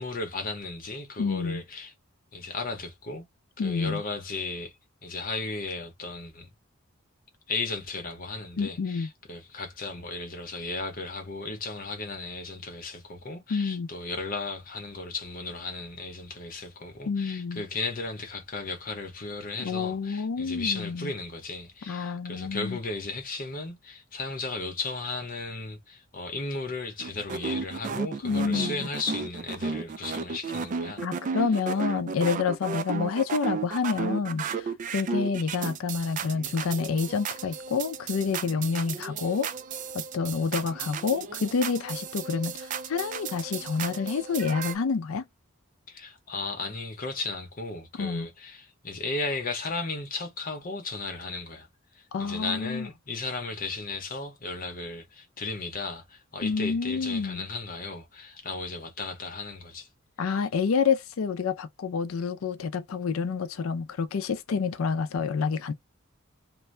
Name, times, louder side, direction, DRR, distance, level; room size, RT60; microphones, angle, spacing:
voice 1, 0.0-1.9 2.3-3.3 3.6-4.7 5.0-6.5 7.5-31.0 45.9-51.7 51.9-59.9 60.2-60.4, left 3 dB, 45° left, 0.8 m, -35 dB
voice 2, 1.2-1.6 3.6-4.0 8.6-9.1 13.5-13.9 17.1-17.6 19.6-21.1 21.9-22.8 28.2-28.9 31.0-39.5 39.9-45.2 48.0-48.3 52.1-52.9 56.4-57.5 60.2-65.7, left 5 dB, 90° left, 0.4 m, -28 dB
sound 1, 27.0-44.7, right 5 dB, 40° right, 0.3 m, -34 dB
2.6 x 2.1 x 3.2 m
head